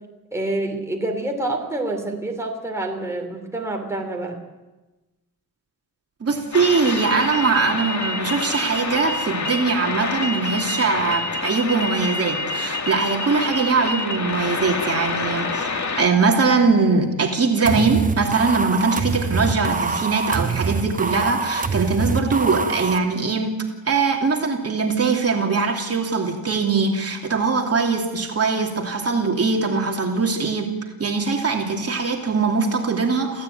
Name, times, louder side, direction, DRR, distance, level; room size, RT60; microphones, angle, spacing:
voice 1, 0.3-4.4, right 2 dB, 10° right, 1 dB, 3.3 m, -27 dB
voice 2, 6.2-15.7 15.9-23.5 23.9-30.7 31.0-33.4, right 4 dB, 40° right, 2 dB, 2.9 m, -21 dB
sound 1, 6.5-16.1, left 3 dB, 50° left, 2.4 m, -27 dB
sound 2, 17.6-23.0, right 4 dB, 25° right, 0.9 m, -25 dB
27.5 x 16.0 x 9.3 m, 1.1 s
wide cardioid pair, 155°, 35 cm